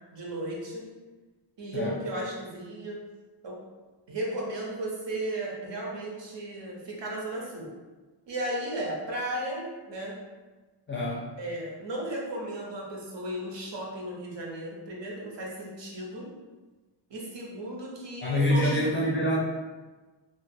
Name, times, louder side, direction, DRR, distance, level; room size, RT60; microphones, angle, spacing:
voice 1, 0.1-0.9 1.6-3.0 3.4-3.6 4.1-7.7 8.3-10.2 11.4-16.3 17.1-18.8, right 1 dB, 65° right, -2 dB, 0.8 m, -35 dB
voice 2, 10.9-11.3 18.2-19.4, equal, 30° left, -3 dB, 0.4 m, -26 dB
2.5 x 2.3 x 2.6 m, 1.2 s
wide cardioid pair, 105°, 45 cm